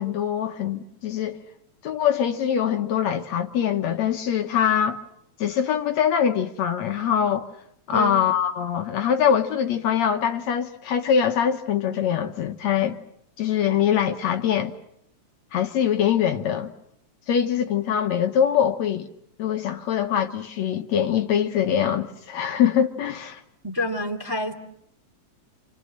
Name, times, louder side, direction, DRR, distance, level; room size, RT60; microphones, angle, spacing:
voice 1, 0.0-1.4 1.8-5.0 5.4-7.5 7.9-13.0 13.4-14.7 15.5-16.7 17.3-19.1 19.4-23.4, left 8 dB, 65° left, 2.3 m, -23 dB
voice 2, 23.6-24.5, left 1 dB, 10° right, 2.0 m, -27 dB
29.0 x 27.5 x 6.6 m
omnidirectional pair, 3.5 m